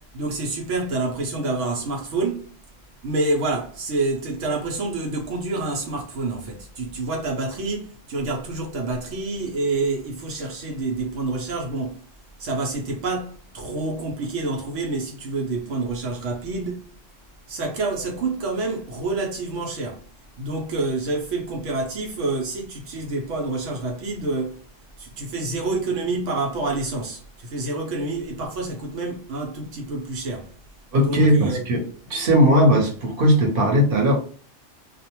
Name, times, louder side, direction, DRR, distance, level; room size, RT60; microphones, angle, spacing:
voice 1, 0.0-2.5 3.0-12.0 12.4-16.9 17.5-20.0 20.4-24.6 25.0-30.5 31.0-31.6, right 3 dB, 80° right, 1.0 m, -28 dB
voice 2, 30.9-31.8 32.1-34.1, equal, 50° right, 1.0 m, -18 dB
2.4 x 2.1 x 2.8 m
omnidirectional pair, 1.3 m